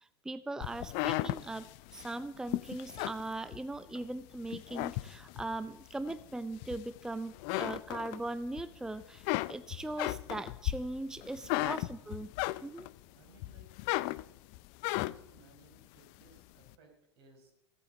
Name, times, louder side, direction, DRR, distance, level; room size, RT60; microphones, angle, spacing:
voice 1, 0.0-1.7 1.9-12.3 12.6-12.9, right 2 dB, 5° right, 13 dB, 0.5 m, -40 dB
sound 1, 0.6-4.0 4.4-5.5 6.1-7.1 7.3-8.6 8.9-13.0 13.4-15.4, left 20 dB, 50° left, 0.5 m, -35 dB
voice 2, 11.3-12.1 13.1-13.7 14.9-17.5, right 3 dB, 65° right, 3 dB, 4.8 m, -62 dB
15.5 x 8.5 x 7.8 m, 0.82 s
hypercardioid pair, 90°, 14 cm